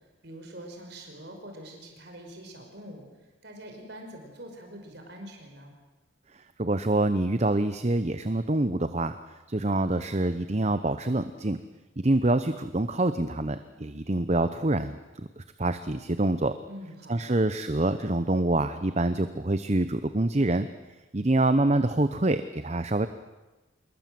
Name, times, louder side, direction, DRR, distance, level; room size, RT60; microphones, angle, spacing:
voice 1, 0.2-3.1 3.4-5.7 16.7-17.3, right 1 dB, 55° right, 2 dB, 5.3 m, -44 dB
voice 2, 6.6-9.1 9.5-11.6 12.0-16.5 17.1-20.7 21.1-23.1, right 2 dB, 35° right, 11 dB, 0.8 m, -26 dB
27.0 x 22.0 x 7.7 m, 1.1 s
head